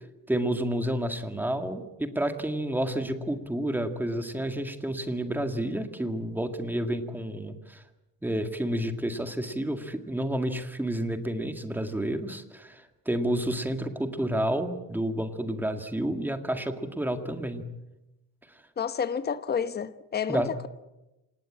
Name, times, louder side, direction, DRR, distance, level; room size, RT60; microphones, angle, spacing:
voice 1, 0.3-7.8 8.2-17.6 18.5-18.6 20.3-20.5, right 1 dB, 5° right, 1.9 m, -30 dB
voice 2, 18.8-20.7, left 7 dB, 30° left, 1.1 m, -30 dB
27.0 x 19.0 x 8.7 m
cardioid pair, 155°, 34 cm